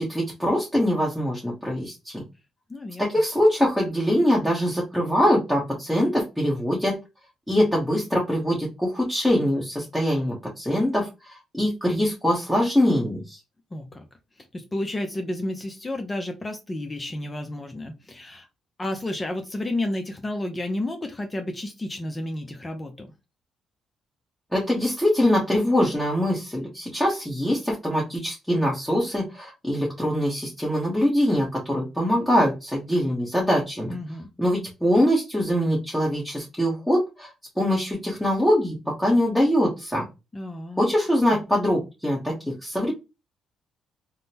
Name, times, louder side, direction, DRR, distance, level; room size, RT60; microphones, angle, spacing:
voice 1, 0.0-2.2 3.0-7.0 7.5-13.4 24.5-34.0 34.4-37.3 37.6-40.0 40.8-42.9, equal, 5° left, -4 dB, 0.9 m, -23 dB
voice 2, 2.7-3.1 13.7-14.1 14.4-18.5 18.8-23.1 33.9-34.3 40.3-40.8, left 1 dB, 20° left, 5 dB, 0.5 m, -31 dB
3.5 x 2.0 x 2.8 m, 0.26 s
cardioid pair, 90°, 0 cm